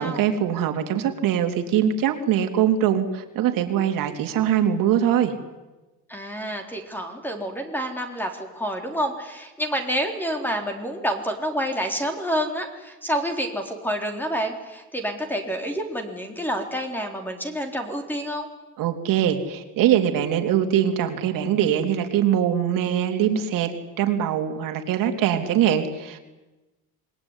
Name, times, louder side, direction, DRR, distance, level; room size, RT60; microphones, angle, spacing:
voice 1, 0.0-5.3 18.8-23.7 24.0-26.2, right 10 dB, 65° right, 5 dB, 3.5 m, -22 dB
voice 2, 6.1-18.5, equal, 5° left, 4 dB, 4.0 m, -28 dB
27.5 x 21.0 x 10.0 m, 1.1 s
cardioid pair, 135°, 35 cm